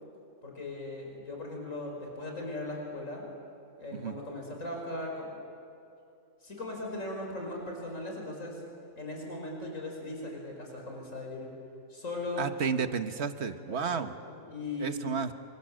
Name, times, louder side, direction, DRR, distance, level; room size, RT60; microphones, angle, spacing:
voice 1, 0.4-3.2 3.8-5.3 6.4-8.6 9.0-11.5 11.9-12.4 13.5-15.1, left 2 dB, 75° left, 0 dB, 5.7 m, -38 dB
voice 2, 12.4-14.1 14.8-15.3, right 6 dB, 55° right, 8 dB, 1.4 m, -32 dB
28.0 x 25.5 x 7.6 m, 2.6 s
omnidirectional pair, 1.4 m